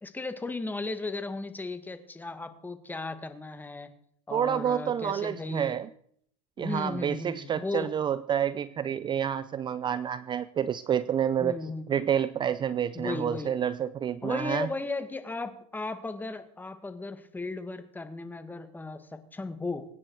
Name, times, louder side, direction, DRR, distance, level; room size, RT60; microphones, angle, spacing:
voice 1, 0.0-3.9 4.3-5.8 6.6-7.9 11.4-12.0 12.9-13.5 14.2-19.9, left 3 dB, 10° left, 10 dB, 1.8 m, -36 dB
voice 2, 4.3-5.9 6.6-11.6 11.9-14.7, right 9 dB, 25° right, 16 dB, 0.6 m, -29 dB
24.0 x 9.7 x 4.7 m, 0.65 s
supercardioid pair, 115°, 18 cm